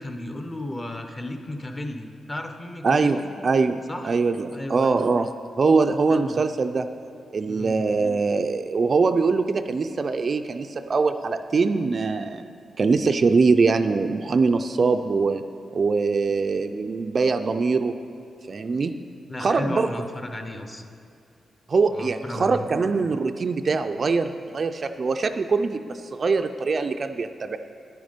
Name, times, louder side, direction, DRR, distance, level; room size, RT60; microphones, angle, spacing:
voice 1, 0.0-3.3 3.9-4.1 4.5-5.1 6.1-6.4 7.5-7.8 19.3-20.8 21.9-22.7, left 1 dB, 20° left, 6 dB, 0.7 m, -34 dB
voice 2, 2.8-6.9 7.3-12.4 12.8-15.4 15.7-17.9 18.5-18.9 19.4-19.9 21.7-27.6, right 4 dB, 40° right, 8 dB, 0.4 m, -23 dB
10.0 x 9.2 x 5.1 m, 2.4 s
wide cardioid pair, 135°, 0 cm